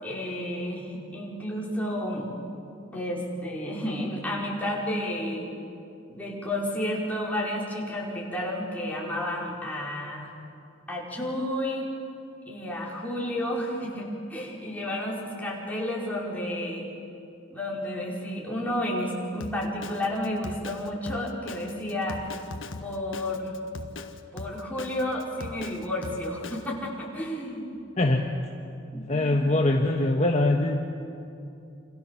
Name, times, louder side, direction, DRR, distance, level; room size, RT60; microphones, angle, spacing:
voice 1, 0.0-2.3 2.9-5.5 6.1-10.3 10.9-11.9 12.5-16.9 17.5-22.2 22.8-23.6 24.3-27.6 28.9-29.3, left 1 dB, 10° left, -4 dB, 5.0 m, -31 dB
Drum kit, 19.4-26.7, left 2 dB, 80° left, 1.5 m, -40 dB
voice 2, 29.1-30.8, left 2 dB, 35° left, 2 dB, 1.4 m, -22 dB
28.0 x 27.0 x 7.2 m, 2.6 s
head